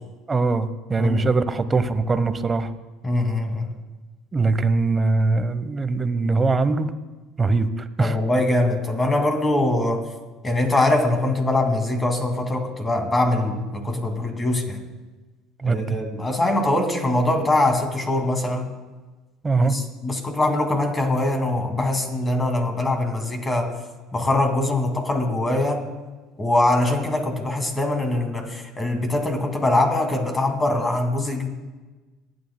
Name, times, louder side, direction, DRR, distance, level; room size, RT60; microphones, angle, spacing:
voice 1, 0.3-2.7 4.3-6.9 7.4-8.2 15.6-16.0 19.4-19.8, right 3 dB, 25° right, 11 dB, 0.9 m, -22 dB
voice 2, 1.0-1.3 3.0-3.7 8.0-10.1 10.4-14.8 15.6-18.7 19.6-23.7 24.1-25.8 26.4-31.5, left 2 dB, 20° left, 4 dB, 2.2 m, -22 dB
27.0 x 9.6 x 2.2 m, 1.2 s
hypercardioid pair, 80°, 0 cm